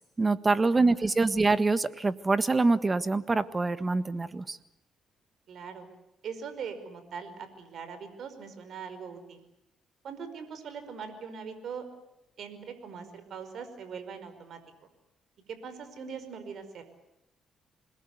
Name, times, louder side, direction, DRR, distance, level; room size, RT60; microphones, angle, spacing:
voice 1, 0.2-4.6, right 3 dB, 25° right, 13 dB, 1.6 m, -25 dB
voice 2, 0.7-1.3 5.5-5.9 6.2-9.4 10.0-11.8 12.4-14.6 15.5-16.8, right 6 dB, 65° right, 10 dB, 5.0 m, -41 dB
27.5 x 21.0 x 8.2 m, 0.89 s
cardioid pair, 90°, 0 cm